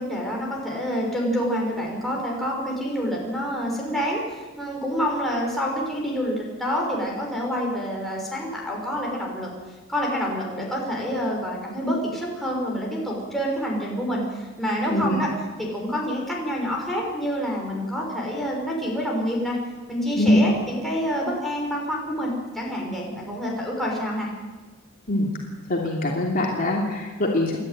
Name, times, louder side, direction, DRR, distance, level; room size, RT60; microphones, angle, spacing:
voice 1, 0.0-9.5 9.9-15.3 15.6-19.6 19.9-24.3, equal, ahead, -3 dB, 6.0 m, -27 dB
voice 2, 25.7-27.6, left 1 dB, 40° left, -2 dB, 2.9 m, -22 dB
29.0 x 12.0 x 9.3 m, 1.3 s
head